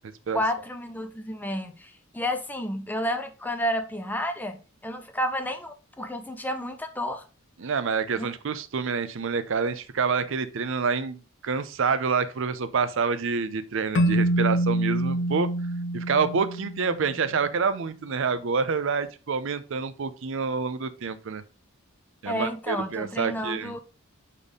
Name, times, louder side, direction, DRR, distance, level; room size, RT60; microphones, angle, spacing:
voice 1, 0.3-7.2 8.2-8.3 22.3-23.8, equal, 10° left, 0.7 m, -31 dB
voice 2, 7.6-15.5 15.9-21.4 22.2-23.7, right 5 dB, 65° right, 0.6 m, -27 dB
Keyboard (musical), 13.9-17.2, right 1 dB, 60° left, 0.5 m, -26 dB
5.3 x 4.2 x 4.9 m
head